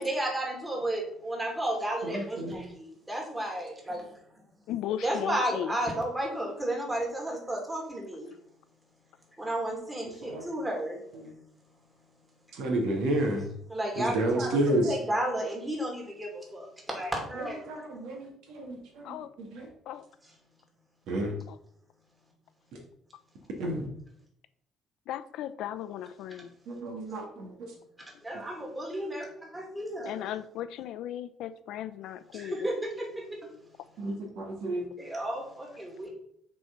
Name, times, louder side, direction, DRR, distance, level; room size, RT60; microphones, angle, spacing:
voice 1, 0.0-4.2 5.0-8.3 9.4-12.1 13.7-17.7 28.0-30.3 32.3-33.8 35.0-36.1, right 1 dB, 10° right, -1 dB, 2.3 m, -33 dB
voice 2, 2.0-2.6 10.2-10.4 11.2-11.3 12.5-13.5 14.0-14.9 17.4-19.7 21.1-21.3 23.6-23.9 26.7-27.5 34.0-34.8, right 1 dB, 85° right, 1 dB, 2.1 m, -31 dB
voice 3, 4.7-5.8 19.0-19.3 19.9-20.0 21.5-21.6 25.1-26.5 30.1-32.6, left 11 dB, 80° left, 12 dB, 0.6 m, -36 dB
6.2 x 4.4 x 5.9 m, 0.71 s
cardioid pair, 135°, 0 cm